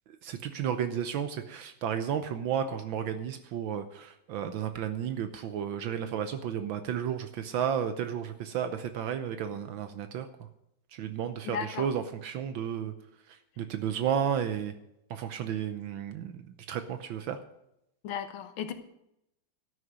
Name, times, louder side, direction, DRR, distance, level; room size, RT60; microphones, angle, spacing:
voice 1, 0.2-10.3 10.9-12.9 13.6-14.7 15.1-16.3 16.7-17.4, right 8 dB, 75° right, 9 dB, 1.5 m, -32 dB
voice 2, 11.4-11.9 18.0-18.7, left 7 dB, 85° left, 9 dB, 1.9 m, -35 dB
12.5 x 6.5 x 9.3 m, 0.83 s
omnidirectional pair, 2.2 m